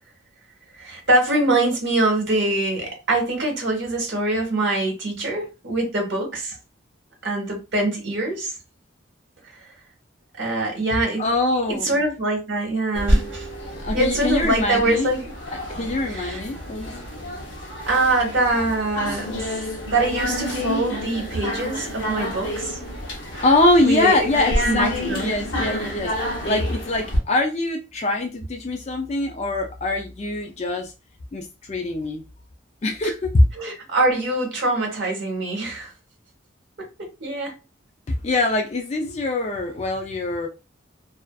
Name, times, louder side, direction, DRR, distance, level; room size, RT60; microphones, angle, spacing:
voice 1, 0.7-6.5 7.2-8.5 10.4-11.2 11.7-13.5 13.9-15.3 16.1-16.4 17.9-22.8 23.8-24.3 24.6-25.3 33.0-33.1 33.6-35.9 36.8-37.5, right 2 dB, 60° right, 1.0 m, -24 dB
voice 2, 11.2-12.0 13.8-15.1 15.5-16.9 23.4-30.9 31.3-32.2 32.8-33.4 38.1-40.5, left 2 dB, 35° left, 0.4 m, -23 dB
sound 1, 12.9-27.2, equal, 65° left, 0.8 m, -28 dB
2.4 x 2.4 x 2.2 m
head